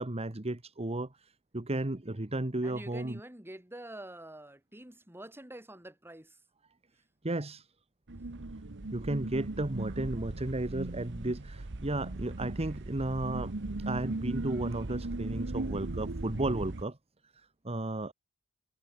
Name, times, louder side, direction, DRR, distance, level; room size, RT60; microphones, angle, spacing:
voice 1, 0.0-3.2 7.2-7.7 8.9-13.5 13.8-17.0 17.6-18.1, right 2 dB, 25° right, 1.3 m, -34 dB
voice 2, 2.6-6.4, right 1 dB, 10° right, 4.3 m, -47 dB
sound 1, 8.1-16.8, right 2 dB, 55° right, 1.2 m, -38 dB
head